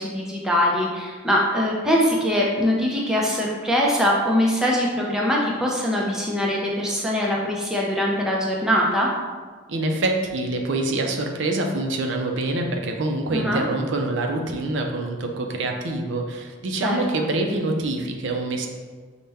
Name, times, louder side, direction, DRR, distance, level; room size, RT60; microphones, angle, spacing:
voice 1, 0.0-9.1 13.3-13.6 16.8-17.0, equal, 5° right, -3 dB, 0.4 m, -22 dB
voice 2, 9.7-18.7, right 2 dB, 60° right, 3 dB, 0.4 m, -25 dB
5.4 x 2.1 x 3.4 m, 1.5 s
head